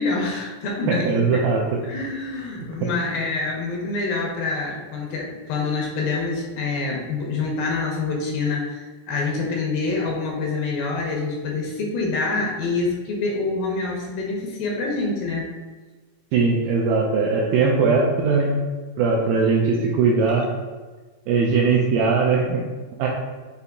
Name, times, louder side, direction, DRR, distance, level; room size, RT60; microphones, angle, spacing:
voice 1, 0.0-1.4 1.8-15.5, left 3 dB, 80° left, -1 dB, 2.2 m, -26 dB
voice 2, 0.9-1.8 16.3-18.6 19.0-20.5 21.3-22.6 23.0-23.1, right 4 dB, 85° right, -2 dB, 2.0 m, -20 dB
6.7 x 2.7 x 2.4 m, 1.3 s
omnidirectional pair, 4.4 m